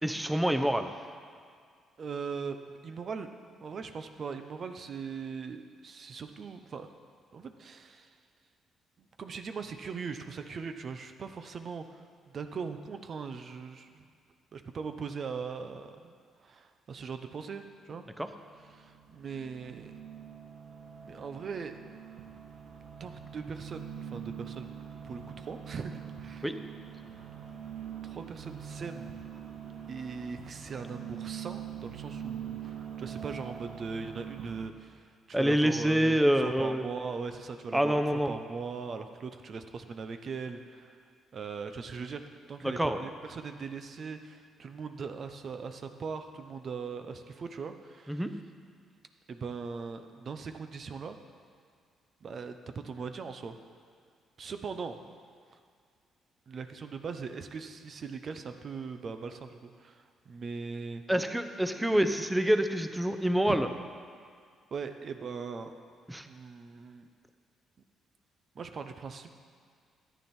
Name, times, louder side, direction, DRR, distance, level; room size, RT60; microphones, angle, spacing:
voice 1, 0.0-0.9 18.2-18.3 26.4-26.6 35.3-36.8 37.7-38.3 42.6-43.0 48.1-48.3 61.1-63.7 66.1-66.3, equal, 10° right, 8 dB, 0.8 m, -26 dB
voice 2, 2.0-3.3 3.6-6.9 7.3-8.1 9.2-12.0 12.3-14.0 14.5-16.1 16.4-18.0 18.7-19.9 21.0-21.7 23.0-24.7 25.0-26.5 28.0-29.1 29.9-41.0 41.3-48.2 49.3-51.2 52.2-53.6 54.4-55.0 56.5-61.0 63.5-63.6 64.7-65.7 66.3-67.1 68.5-69.3, right 5 dB, 50° right, 8 dB, 0.8 m, -40 dB
sound 1, 18.2-34.7, right 8 dB, 70° right, 1.4 m, -43 dB
13.5 x 9.3 x 4.5 m, 2.1 s
supercardioid pair, 75°, 0 cm